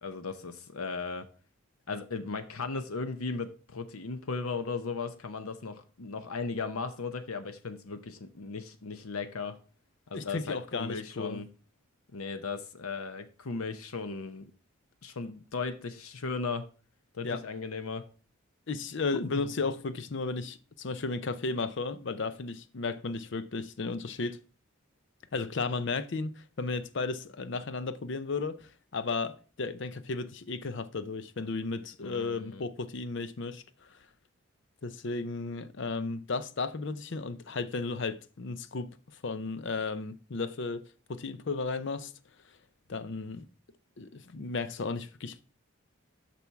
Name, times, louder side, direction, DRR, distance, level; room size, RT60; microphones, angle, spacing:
voice 1, 0.0-1.3 1.9-9.6 10.1-11.5 12.1-14.5 15.0-16.6 17.1-18.1 19.1-19.5 32.0-32.6, left 4 dB, 90° left, 0.8 m, -36 dB
voice 2, 10.1-11.4 17.2-17.4 18.7-24.4 25.3-33.6 34.8-38.9 39.2-42.1 42.9-43.4 44.0-45.4, left 3 dB, 55° left, 0.6 m, -34 dB
6.9 x 6.0 x 4.6 m
head